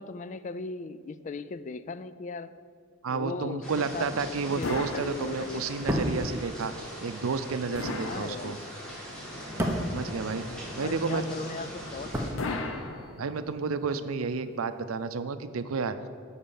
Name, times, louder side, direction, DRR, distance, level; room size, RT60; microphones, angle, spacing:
voice 1, 0.0-2.6 3.1-5.6 8.0-8.7 10.7-12.7, left 4 dB, 35° left, 14 dB, 0.3 m, -38 dB
voice 2, 3.0-6.7 7.0-8.6 9.9-10.5 10.8-11.2 13.2-16.0, right 4 dB, 90° right, 11 dB, 0.5 m, -31 dB
sound 1, 3.6-12.3, equal, 5° left, 2.0 m, -41 dB
sound 2, 4.6-5.8 7.7-9.0 12.4-13.7, left 2 dB, 75° left, 0.8 m, -36 dB
sound 3, 5.7-11.0 11.3-13.1 13.4-13.5, equal, 10° right, 0.9 m, -34 dB
11.0 x 4.3 x 7.1 m, 2.1 s
head